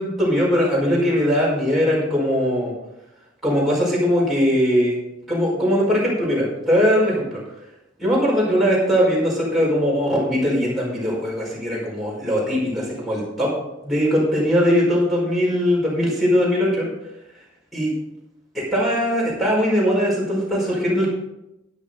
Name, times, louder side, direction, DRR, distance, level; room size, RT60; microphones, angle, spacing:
voice 1, 0.0-2.7 3.4-5.0 5.3-7.4 8.0-13.5 13.8-16.9 17.7-17.9 18.5-21.1, equal, ahead, -7 dB, 5.0 m, -20 dB
13.0 x 10.0 x 3.9 m, 0.88 s
head